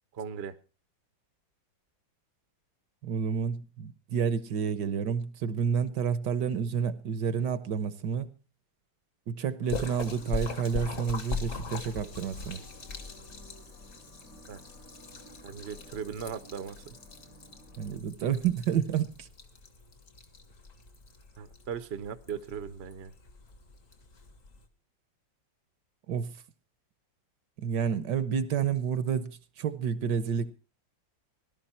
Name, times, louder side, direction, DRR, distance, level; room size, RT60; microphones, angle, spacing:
voice 1, 0.1-0.6 14.5-14.6 15.4-17.0 21.4-23.1, right 7 dB, 45° right, 0.9 m, -38 dB
voice 2, 3.0-8.3 9.3-12.6 17.8-19.3 26.1-26.3 27.6-30.5, right 7 dB, 70° right, 1.5 m, -30 dB
sound 1, 9.6-18.0, equal, 65° left, 4.1 m, -55 dB
Splash splatter, 9.7-24.7, left 4 dB, 45° left, 1.9 m, -41 dB
18.0 x 12.5 x 4.3 m
omnidirectional pair, 2.0 m